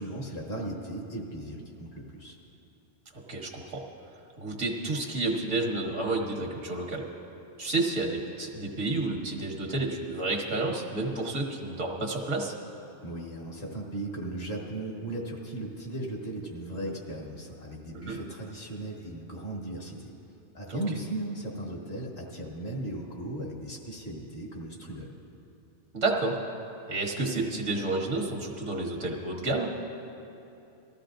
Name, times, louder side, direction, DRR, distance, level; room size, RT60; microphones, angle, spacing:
voice 1, 0.0-2.4 13.0-20.1 20.5-25.1, right 1 dB, 60° left, -2 dB, 1.9 m, -37 dB
voice 2, 3.3-3.8 4.4-7.0 7.6-12.5 17.9-18.2 20.7-20.8 25.9-26.4 26.9-29.7, right 2 dB, 85° right, 0 dB, 1.5 m, -30 dB
19.5 x 13.5 x 2.6 m, 2.8 s
omnidirectional pair, 1.2 m